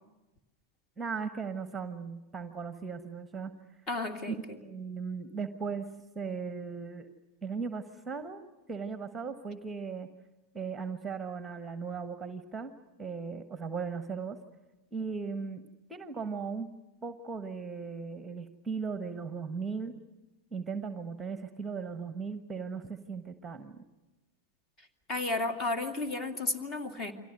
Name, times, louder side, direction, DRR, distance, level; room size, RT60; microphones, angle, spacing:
voice 1, 1.0-3.5 4.3-5.9 6.1-7.1 7.4-8.4 8.7-10.1 10.5-12.7 13.0-14.4 14.9-15.6 15.9-16.7 17.0-20.0 20.5-23.8, right 5 dB, 10° right, 10 dB, 1.3 m, -37 dB
voice 2, 3.9-4.6 25.1-27.1, left 2 dB, 25° left, 6 dB, 2.5 m, -33 dB
29.5 x 24.0 x 6.6 m, 1.0 s
figure-of-eight pair, 90°, 0 cm